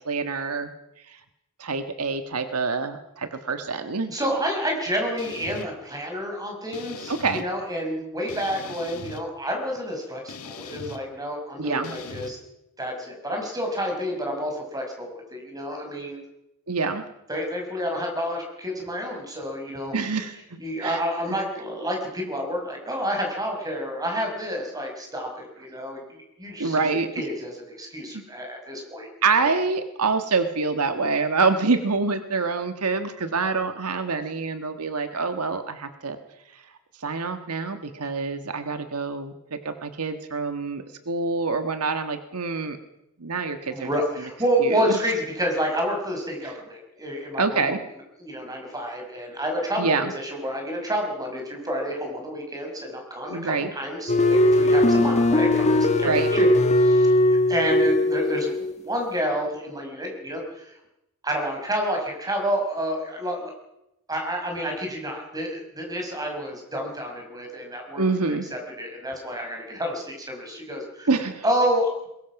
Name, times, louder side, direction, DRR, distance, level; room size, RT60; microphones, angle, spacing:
voice 1, 0.0-0.7 1.1-1.2 1.6-4.1 7.1-7.4 11.6-11.9 16.7-17.0 19.9-21.0 21.3-21.4 26.6-27.1 28.1-28.2 29.2-36.2 36.5-36.6 37.0-42.8 43.2-43.9 44.6-44.9 46.4-46.5 47.4-47.8 49.8-50.1 53.3-53.7 56.0-56.3 68.0-68.4 71.1-71.4, right 4 dB, 85° right, 8 dB, 1.5 m, -26 dB
voice 2, 4.1-12.4 12.8-16.2 17.3-19.9 20.6-29.1 38.0-38.1 43.7-47.8 48.2-60.7 61.2-63.5 64.1-68.0 68.3-71.1 71.4-72.1, equal, 15° right, 2 dB, 5.5 m, -29 dB
sound 1, 5.2-5.7 6.7-7.4 8.3-9.2 10.3-11.0 11.8-12.3, left 4 dB, 75° left, 1.8 m, -39 dB
sound 2, 54.1-58.7, left 1 dB, 30° left, 1.5 m, -19 dB
22.0 x 20.5 x 6.0 m, 0.86 s
head